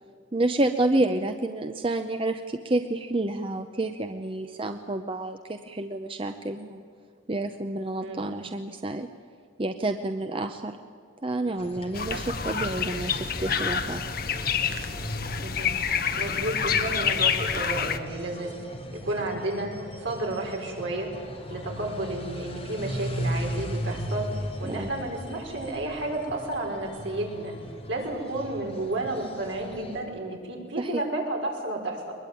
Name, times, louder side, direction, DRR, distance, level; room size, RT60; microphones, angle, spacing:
voice 1, 0.3-6.8 7.3-9.1 9.6-10.8 11.2-14.0 24.7-24.9 30.8-31.0, right 2 dB, 25° right, 7 dB, 0.7 m, -29 dB
sound 1, 11.5-30.0, equal, 30° left, 3.5 m, -38 dB
sound 2, 11.9-18.0, left 7 dB, 50° left, 1.1 m, -28 dB
voice 2, 15.4-18.5 18.9-19.7 20.0-21.1 21.5-27.5 27.9-32.1, right 2 dB, 70° right, 0 dB, 5.2 m, -32 dB
22.5 x 21.0 x 9.2 m, 2.1 s
head